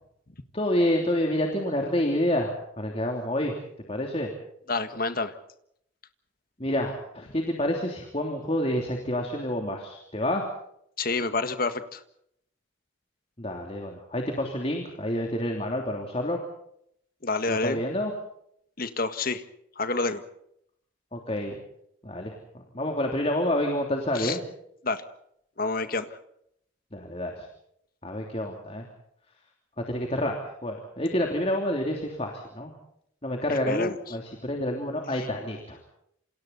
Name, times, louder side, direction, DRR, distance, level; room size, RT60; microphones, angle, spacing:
voice 1, 0.5-3.5 3.9-4.3 6.6-10.4 13.4-16.4 17.5-18.1 21.1-21.6 22.0-22.3 22.7-24.4 26.9-27.3 28.0-28.8 29.9-30.3 30.6-32.7 33.2-35.8, left 1 dB, 30° left, 2 dB, 3.0 m, -28 dB
voice 2, 4.7-5.3 11.0-12.0 17.2-17.8 18.8-19.4 19.8-20.2 24.1-24.4 24.8-25.0 25.6-26.1 33.5-34.0, left 3 dB, 45° left, 10 dB, 1.7 m, -28 dB
28.5 x 26.5 x 4.1 m, 0.74 s
head